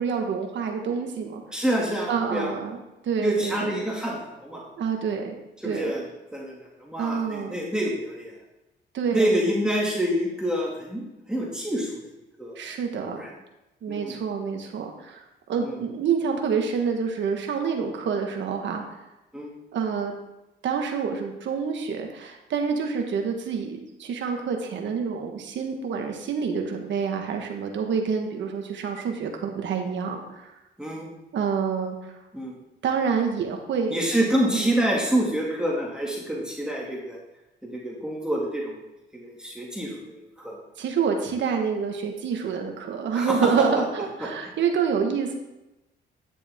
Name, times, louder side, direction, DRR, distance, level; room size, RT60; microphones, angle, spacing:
voice 1, 0.0-1.4 2.1-2.8 3.0-3.7 4.8-5.3 5.6-5.8 7.0-7.6 8.9-9.3 12.6-13.2 13.8-18.8 19.7-20.1 20.6-30.5 31.3-32.0 32.8-34.0 34.5-34.7 40.8-45.4, right 6 dB, 65° right, 3 dB, 1.5 m, -27 dB
voice 2, 1.5-2.5 3.2-4.6 5.6-6.0 6.3-8.3 9.1-12.0 12.4-12.7 13.0-13.3 13.9-14.2 15.6-15.8 19.3-19.5 30.8-31.1 32.3-32.5 33.9-37.2 37.6-38.8 39.1-40.5 43.1-43.4, right 1 dB, 5° right, -4 dB, 2.4 m, -27 dB
10.5 x 6.9 x 3.7 m, 0.97 s
cardioid pair, 90°, 20 cm